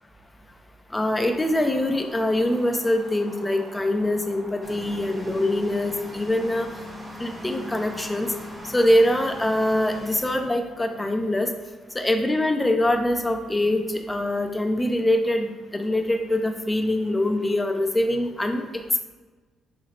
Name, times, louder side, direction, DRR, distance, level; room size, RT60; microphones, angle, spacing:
voice 1, 0.9-6.7 7.2-8.3 8.7-11.5 11.9-19.0, left 1 dB, 15° left, 5 dB, 0.4 m, -23 dB
sound 1, 1.2-10.0, right 1 dB, 45° right, 0.9 m, -45 dB
sound 2, 4.6-10.4, left 1 dB, 15° right, 0.9 m, -40 dB
4.0 x 3.1 x 2.5 m, 1.3 s
cardioid pair, 90°, 0 cm